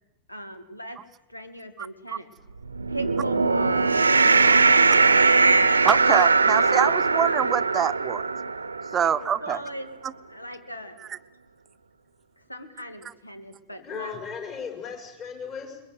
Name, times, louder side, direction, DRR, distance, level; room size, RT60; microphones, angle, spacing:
voice 1, 0.3-1.0 1.3-2.3 2.9-3.9 9.0-9.9 10.3-11.0 12.5-14.1, right 1 dB, 85° left, 9 dB, 2.2 m, -39 dB
voice 2, 1.8-2.2 5.8-8.3 8.9-9.6 10.0-10.1 11.1-11.2, right 9 dB, 25° right, 13 dB, 0.8 m, -25 dB
sound 1, 2.7-9.2, right 4 dB, 80° right, 0.8 m, -20 dB
voice 3, 13.8-15.8, left 6 dB, 35° left, 4 dB, 5.8 m, -36 dB
22.5 x 22.0 x 8.3 m, 0.93 s
figure-of-eight pair, 90°, 0 cm